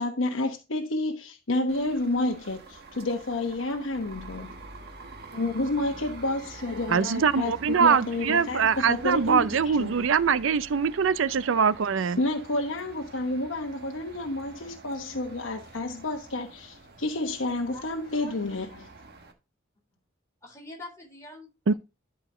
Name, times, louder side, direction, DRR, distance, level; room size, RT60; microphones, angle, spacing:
voice 1, 0.0-4.6 5.3-10.0 12.2-18.9, left 2 dB, 70° left, 1.1 m, -30 dB
sound 1, 1.7-19.3, right 3 dB, 55° right, 1.5 m, -46 dB
voice 2, 6.9-12.2 21.7-21.8, right 6 dB, 70° right, 0.5 m, -23 dB
voice 3, 20.4-21.7, left 1 dB, 15° left, 4.0 m, -44 dB
11.5 x 5.0 x 3.8 m
head